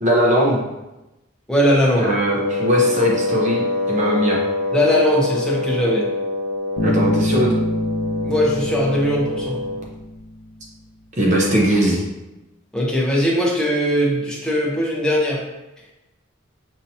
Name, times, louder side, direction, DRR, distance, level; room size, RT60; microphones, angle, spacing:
voice 1, 0.0-0.6 2.0-4.4 6.8-7.5 11.2-12.0, equal, 35° right, -2 dB, 0.6 m, -19 dB
voice 2, 1.5-2.1 4.7-6.1 8.2-9.6 12.7-15.4, equal, 5° left, -4 dB, 0.7 m, -19 dB
Wind instrument woodwind instrument, 2.3-9.9, left 2 dB, 55° right, 1.2 m, -25 dB
Bass guitar, 6.8-10.5, left 1 dB, 75° left, 0.4 m, -25 dB
5.3 x 2.9 x 2.7 m, 0.99 s
head